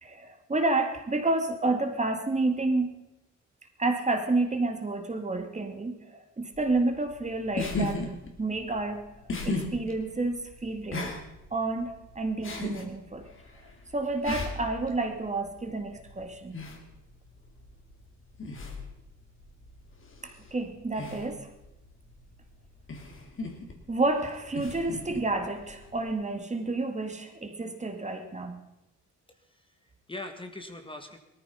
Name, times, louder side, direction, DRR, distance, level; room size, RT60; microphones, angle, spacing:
voice 1, 0.0-2.9 3.8-8.1 8.4-9.1 9.4-11.2 11.5-13.3 13.9-16.6 20.2-21.5 23.9-28.6, right 2 dB, 25° right, 6 dB, 2.1 m, -30 dB
sound 1, 6.5-26.2, left 2 dB, 40° left, 3.2 m, -39 dB
voice 2, 29.3-31.2, left 2 dB, 15° left, 6 dB, 1.9 m, -42 dB
18.0 x 14.0 x 5.7 m, 0.92 s
cardioid pair, 90°, 30 cm